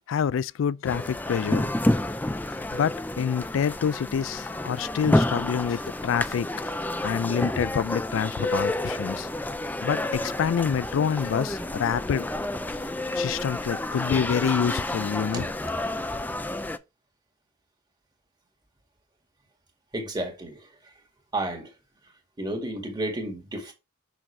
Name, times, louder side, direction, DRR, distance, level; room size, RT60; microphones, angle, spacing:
voice 1, 0.0-1.7 2.7-6.7 7.0-9.3 9.8-12.3 13.1-15.4, left 7 dB, 75° left, 0.3 m, -27 dB
sound 1, 0.8-16.8, left 1 dB, 10° left, 0.4 m, -29 dB
voice 2, 19.9-20.7 21.3-21.7 22.4-23.7, right 1 dB, 20° right, 2.0 m, -32 dB
6.2 x 6.2 x 3.3 m
head